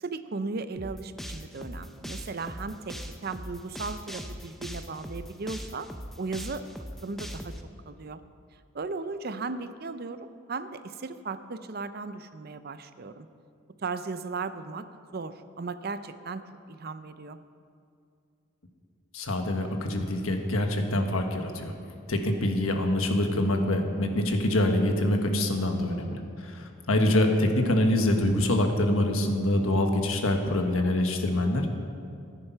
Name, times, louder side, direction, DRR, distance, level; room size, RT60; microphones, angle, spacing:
voice 1, 0.0-5.9 6.2-6.6 7.0-7.5 7.9-8.2 8.7-13.3 13.8-14.9 15.1-16.4 16.7-17.4, right 4 dB, 50° right, 11 dB, 0.5 m, -36 dB
sound 1, 0.8-7.6, equal, ahead, 0.6 m, -40 dB
voice 2, 19.1-21.7 22.1-31.7, left 1 dB, 85° left, 4 dB, 1.4 m, -25 dB
14.5 x 9.9 x 5.7 m, 2.5 s
head